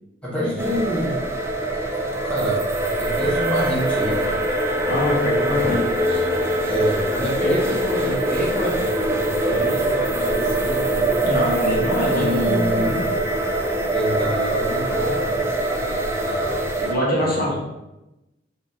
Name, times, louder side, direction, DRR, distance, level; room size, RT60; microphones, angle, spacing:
voice 1, 0.2-1.2 2.2-2.6 3.0-4.4 5.6-5.8 6.6-11.0 12.1-13.0 13.9-16.6 17.1-17.5, equal, 5° left, -8 dB, 0.8 m, -27 dB
sound 1, 0.6-16.9, right 1 dB, 15° right, 0.3 m, -23 dB
voice 2, 4.8-5.9 11.2-13.2 16.8-17.5, equal, 50° left, -5 dB, 1.2 m, -24 dB
3.9 x 2.4 x 4.2 m, 0.96 s
head